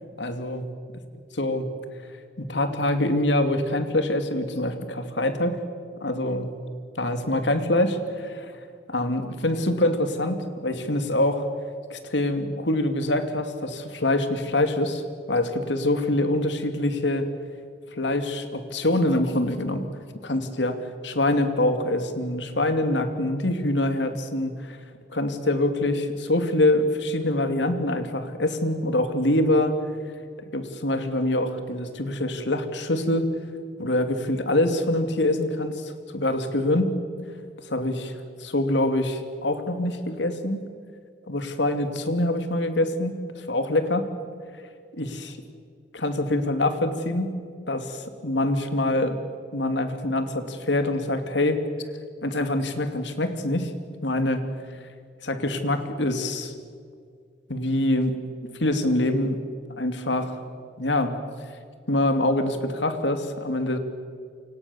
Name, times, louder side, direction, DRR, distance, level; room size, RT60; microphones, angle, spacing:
voice 1, 0.2-0.6 1.4-1.7 2.4-5.6 6.0-6.6 7.0-8.5 8.9-11.4 11.9-15.0 15.3-17.3 18.0-19.8 20.2-24.8 25.1-29.8 30.5-33.3 33.8-36.9 37.6-38.1 38.4-40.6 41.3-44.1 44.9-45.4 45.9-47.3 47.7-49.2 49.5-51.6 52.2-53.7 54.0-54.4 55.2-56.5 57.5-58.1 58.6-59.4 59.8-60.4 60.8-61.1 61.9-63.8, left 1 dB, 80° left, 8 dB, 2.7 m, -25 dB
29.0 x 26.5 x 7.2 m, 2.1 s
head